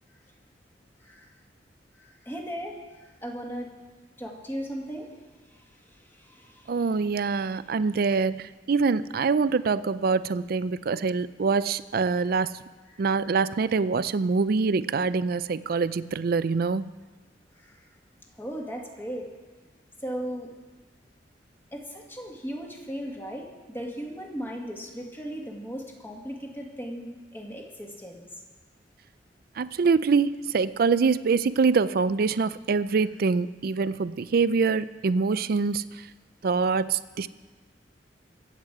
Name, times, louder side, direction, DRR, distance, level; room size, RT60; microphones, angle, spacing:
voice 1, 2.0-2.8 3.2-3.7 4.2-5.1 6.2-6.7 17.6-17.7 18.4-19.3 20.0-20.5 21.7-28.3, equal, 15° left, 0 dB, 1.8 m, -37 dB
voice 2, 6.7-12.6 13.0-16.8 29.6-35.8 36.4-37.3, right 4 dB, 55° right, 16 dB, 0.4 m, -24 dB
23.0 x 8.1 x 4.8 m, 1.3 s
head